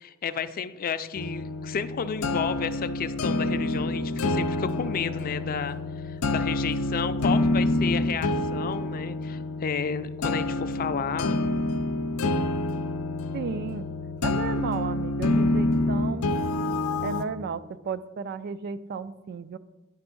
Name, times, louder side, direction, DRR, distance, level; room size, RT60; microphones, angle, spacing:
voice 1, 0.0-5.8 6.0-11.4, left 6 dB, 40° left, 12 dB, 0.4 m, -32 dB
sound 1, 1.1-17.2, left 2 dB, 90° left, 0.5 m, -27 dB
voice 2, 13.3-13.9 14.2-16.3 17.0-19.6, right 5 dB, 50° right, 15 dB, 0.3 m, -34 dB
9.9 x 3.5 x 6.1 m, 1.1 s
head